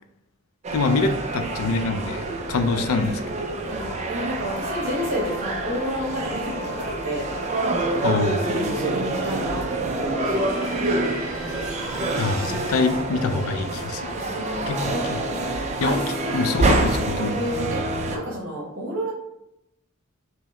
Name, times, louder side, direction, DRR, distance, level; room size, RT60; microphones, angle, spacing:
sound 1, 0.6-18.2, right 2 dB, 30° right, 0.3 m, -27 dB
voice 1, 0.7-3.5 8.0-8.7 12.2-14.1 14.7-15.2 15.8-17.4, left 3 dB, 75° left, 8 dB, 0.4 m, -25 dB
sound 2, 0.9-2.5 3.1-3.2 3.7-10.8 11.2-18.2, left 2 dB, 15° left, 1.3 m, -40 dB
voice 2, 3.6-7.3 8.5-10.5 14.2-15.0 15.8-16.8 17.3-19.1, equal, 55° right, -4 dB, 0.9 m, -31 dB
sound 3, 10.1-13.0, right 1 dB, ahead, 1.4 m, -36 dB
4.6 x 2.1 x 3.1 m, 0.87 s
head